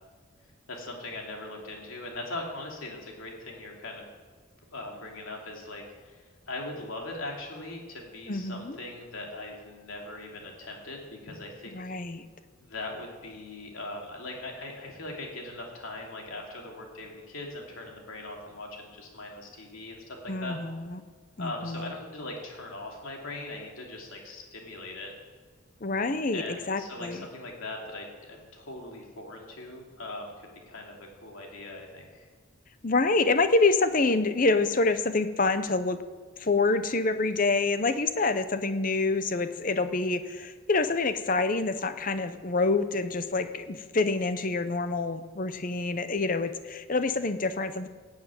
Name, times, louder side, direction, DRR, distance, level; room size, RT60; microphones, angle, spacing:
voice 1, 0.7-4.1 4.7-11.9 12.6-20.6 21.4-25.1 26.3-32.3, left 2 dB, 75° left, 0 dB, 3.0 m, -40 dB
voice 2, 8.3-8.8 11.7-12.2 20.3-21.0 21.4-21.9 25.8-27.2 32.8-36.0 36.4-47.9, left 3 dB, 40° left, 11 dB, 0.7 m, -27 dB
15.0 x 7.3 x 9.0 m, 1.5 s
head